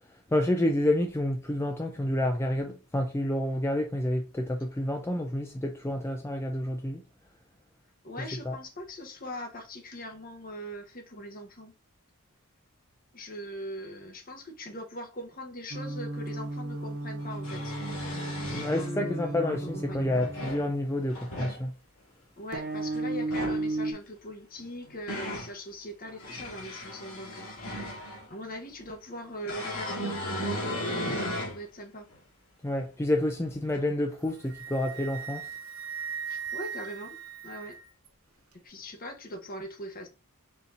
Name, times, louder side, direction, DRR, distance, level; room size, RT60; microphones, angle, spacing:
voice 1, 0.3-7.0 8.5-8.6 18.5-21.7 31.1-31.2 32.6-35.4, left 1 dB, 10° left, 0.4 m, -29 dB
voice 2, 8.0-11.7 13.1-17.7 18.7-20.1 22.4-28.0 28.3-32.1 36.3-37.2 37.4-37.8 38.6-40.1, equal, 40° left, 1.0 m, -41 dB
sound 1, 15.7-20.8 22.5-23.9, right 2 dB, 50° right, 0.7 m, -34 dB
sound 2, 16.3-16.4 17.2-18.9 19.9-20.6 21.1-21.6 23.2-23.6 24.6-25.5 26.1-28.3 29.5-31.6 32.1-32.2 33.7-33.8, left 1 dB, 70° left, 1.7 m, -35 dB
Wind instrument woodwind instrument, 34.1-38.1, right 7 dB, 80° right, 1.1 m, -39 dB
4.3 x 2.7 x 3.7 m
head